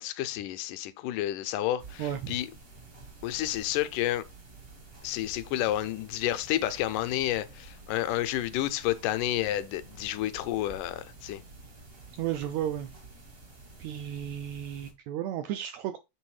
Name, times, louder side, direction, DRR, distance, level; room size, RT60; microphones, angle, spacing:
voice 1, 0.0-2.5 3.2-4.2 5.0-11.4, left 13 dB, 85° left, 2.2 m, -30 dB
sound 1, 1.8-14.9, right 3 dB, 50° right, 0.7 m, -50 dB
voice 2, 2.0-2.4 12.1-12.9 13.8-16.0, right 11 dB, 80° right, 1.6 m, -33 dB
6.8 x 3.5 x 4.8 m
omnidirectional pair, 3.6 m